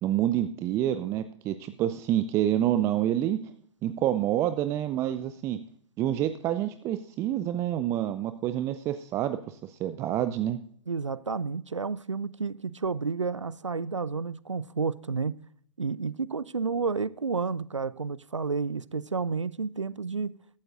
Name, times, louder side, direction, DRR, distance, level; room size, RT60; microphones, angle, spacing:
voice 1, 0.0-3.4 3.8-5.6 6.0-10.6, right 12 dB, 20° right, 0.4 m, -28 dB
voice 2, 10.9-15.4 15.8-20.3, right 4 dB, 85° right, 0.4 m, -31 dB
15.0 x 12.5 x 2.5 m
figure-of-eight pair, 115°, 15 cm